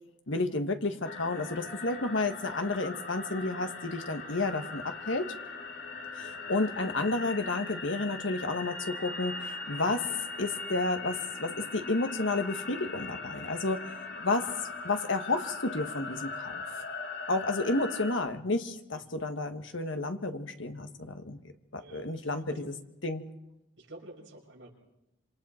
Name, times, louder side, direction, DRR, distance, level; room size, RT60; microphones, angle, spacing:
voice 1, 0.3-5.3 6.2-10.1 10.4-13.8 14.2-14.5 14.8-16.6 17.3-21.4 21.7-22.7 23.0-23.2, left 2 dB, 75° left, 7 dB, 1.5 m, -31 dB
sound 1, 1.0-18.1, left 4 dB, 55° left, 2.5 m, -40 dB
voice 2, 6.2-6.5 18.9-19.0 21.8-22.7 23.8-24.7, right 1 dB, 80° right, -1 dB, 5.9 m, -50 dB
27.0 x 25.5 x 4.4 m, 0.91 s
head